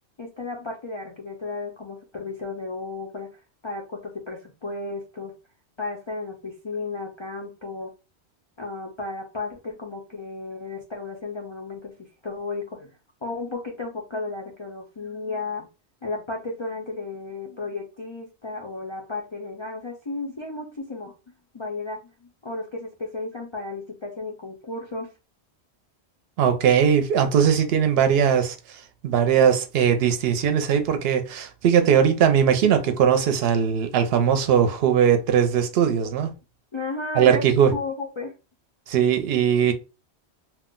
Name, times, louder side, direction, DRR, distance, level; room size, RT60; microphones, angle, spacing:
voice 1, 0.2-3.3 3.6-5.3 5.8-7.9 8.6-11.9 12.2-15.7 16.0-25.1 29.2-29.4 36.7-37.4 37.7-38.3 38.9-39.1, left 3 dB, 40° left, 0.4 m, -34 dB
voice 2, 26.4-36.3 37.2-37.7 38.9-39.7, right 8 dB, 70° right, 0.8 m, -20 dB
2.4 x 2.1 x 3.6 m
omnidirectional pair, 1.1 m